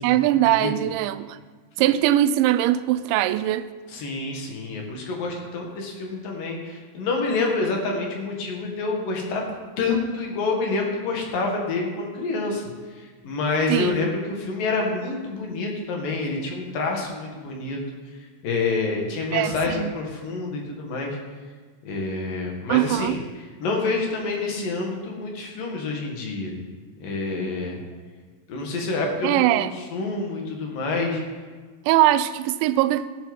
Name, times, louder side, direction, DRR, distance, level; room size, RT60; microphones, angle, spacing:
voice 1, 0.0-1.4 1.8-3.7 13.7-14.1 19.3-19.9 22.7-23.2 29.2-29.7 31.9-33.1, right 13 dB, 90° right, 2.6 m, -21 dB
voice 2, 3.9-9.4 9.8-12.6 12.9-17.8 18.4-21.2 21.8-23.2 23.6-26.5 27.0-27.8 28.5-31.2, left 3 dB, 55° left, 3.0 m, -27 dB
18.5 x 7.4 x 5.4 m
omnidirectional pair, 5.8 m